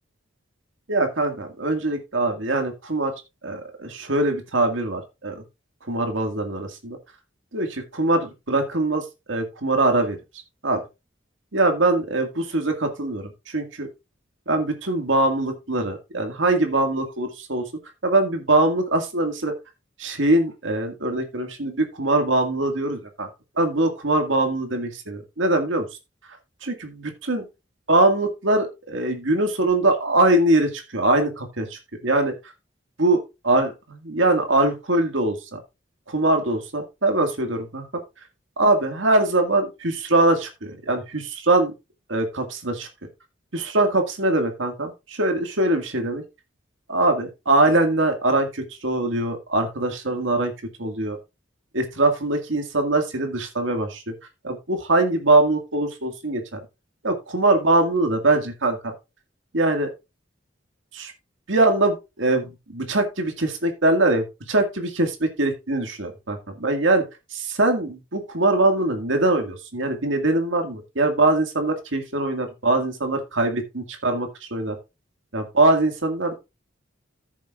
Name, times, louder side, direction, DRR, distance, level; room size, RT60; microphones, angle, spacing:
voice 1, 0.9-3.1 3.4-5.4 5.9-7.0 7.5-10.2 10.6-10.8 11.5-13.9 14.5-17.7 18.0-19.6 20.0-23.3 23.6-25.9 26.6-27.5 27.9-32.3 33.0-33.2 33.5-35.6 36.1-38.0 38.6-41.7 42.1-42.9 43.5-46.2 46.9-50.5 50.8-51.2 51.7-54.1 54.4-56.6 57.0-58.9 59.5-59.9 60.9-61.1 61.5-67.0 67.3-74.8 75.3-76.4, right 2 dB, 75° right, 5 dB, 2.0 m, -22 dB
14.5 x 7.2 x 2.4 m, 0.25 s
head